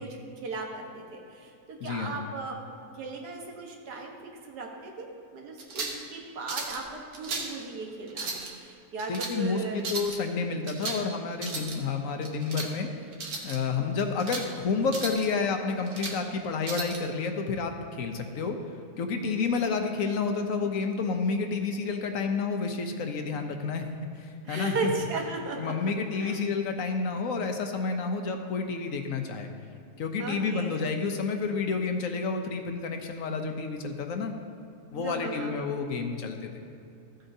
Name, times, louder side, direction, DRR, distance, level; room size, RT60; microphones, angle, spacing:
voice 1, 0.0-2.6 3.0-9.9 13.8-13.9 19.2-19.6 24.5-25.9 26.2-26.4 30.2-30.7 35.0-35.7, right 3 dB, 90° right, 0 dB, 1.7 m, -36 dB
voice 2, 1.8-2.2 9.1-12.9 13.4-18.6 19.0-23.8 24.2-24.9 25.6-29.5 30.0-34.3 34.9-36.5, left 4 dB, 65° left, 5 dB, 1.0 m, -30 dB
sound 1, 5.6-6.0 6.5-6.8 7.1-7.5 8.1-8.5 9.0-9.3 9.8-10.2 10.7-11.1 11.3-11.8 12.2-12.7 13.1-13.6 14.0-14.5 14.9-15.3 15.7-16.2 16.6-17.0, right 3 dB, 70° right, 1.5 m, -35 dB
15.0 x 7.8 x 2.7 m, 2.6 s
omnidirectional pair, 1.7 m